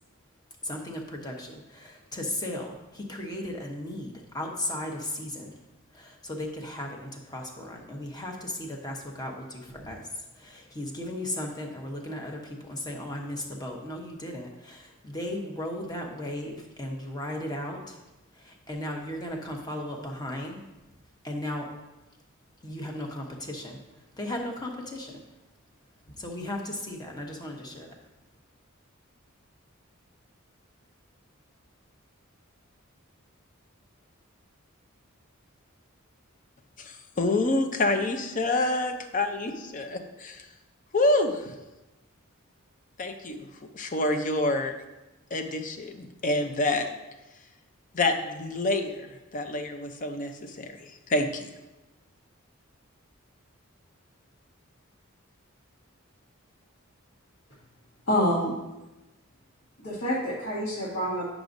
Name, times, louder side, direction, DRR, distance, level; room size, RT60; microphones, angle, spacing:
voice 1, 0.6-5.6 5.9-18.0 18.3-20.7 21.2-21.7 22.6-25.2 26.2-27.9, left 1 dB, 20° left, 1 dB, 1.0 m, -36 dB
voice 2, 36.8-40.5 40.9-41.5 43.0-43.5 43.7-44.7 45.3-46.9 47.9-51.5, left 2 dB, 40° left, 6 dB, 0.6 m, -27 dB
voice 3, 58.1-58.6 59.8-61.3, equal, 60° left, -8 dB, 1.7 m, -27 dB
9.9 x 6.0 x 2.6 m, 1.0 s
head